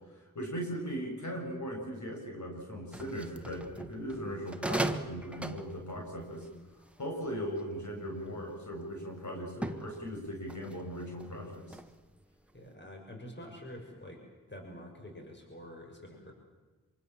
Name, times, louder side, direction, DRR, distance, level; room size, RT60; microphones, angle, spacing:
voice 1, 0.1-6.5 6.7-11.8, equal, 60° left, 1 dB, 7.5 m, -39 dB
sound 1, 2.9-7.9 8.5-8.9 9.5-12.2 12.5-12.7, right 2 dB, 5° right, 1.7 m, -39 dB
voice 2, 12.5-14.2 14.5-16.3, left 1 dB, 35° left, 1 dB, 6.6 m, -47 dB
26.5 x 24.0 x 7.4 m, 1.2 s
cardioid pair, 60°, 33 cm